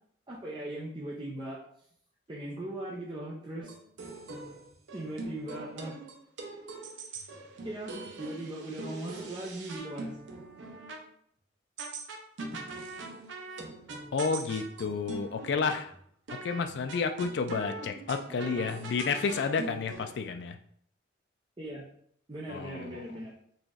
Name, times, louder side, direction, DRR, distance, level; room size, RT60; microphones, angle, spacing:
voice 1, 0.3-1.6 2.3-3.7 4.9-6.0 7.6-10.1 12.5-12.6 13.6-13.7 18.3-18.7 21.6-21.9 22.3-23.3, right 1 dB, 25° right, -5 dB, 0.5 m, -39 dB
sound 1, 3.6-11.0 11.8-15.8 16.3-16.6 16.9-20.1, right 3 dB, 80° right, 0.6 m, -42 dB
voice 2, 14.1-15.9 16.4-20.6 22.5-23.0, left 5 dB, 60° left, 7 dB, 0.3 m, -31 dB
4.1 x 2.9 x 2.4 m, 0.65 s
head